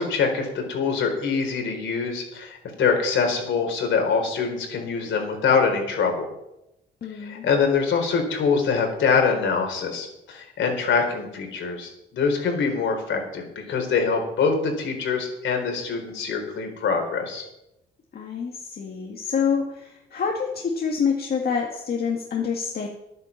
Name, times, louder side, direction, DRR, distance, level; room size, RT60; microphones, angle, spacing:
voice 1, 0.0-6.3 7.2-17.5, left 5 dB, 70° left, 3 dB, 4.1 m, -24 dB
voice 2, 7.0-7.5 18.1-22.9, left 6 dB, 50° left, 0 dB, 1.9 m, -27 dB
11.0 x 9.6 x 7.3 m, 0.86 s
cardioid pair, 90°, 20 cm